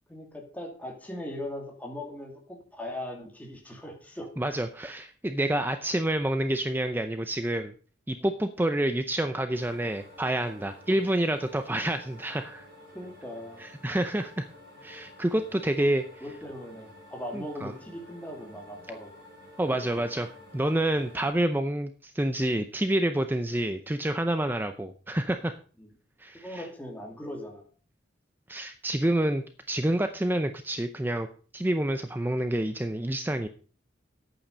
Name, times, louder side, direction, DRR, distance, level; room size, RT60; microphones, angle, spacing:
voice 1, 0.1-4.3 10.9-11.1 11.7-11.8 12.9-13.6 16.2-19.2 19.6-20.0 25.8-25.9 26.3-27.6, left 1 dB, 10° left, 0 dB, 2.5 m, -39 dB
voice 2, 4.4-7.7 8.1-12.7 13.6-14.5 14.8-16.1 17.3-17.7 19.6-25.6 26.2-26.6 28.5-31.3 31.5-33.5, right 1 dB, 10° right, 8 dB, 0.6 m, -28 dB
sound 1, 9.5-21.3, left 1 dB, 60° right, 6.3 m, -51 dB
10.0 x 8.8 x 5.2 m, 0.41 s
head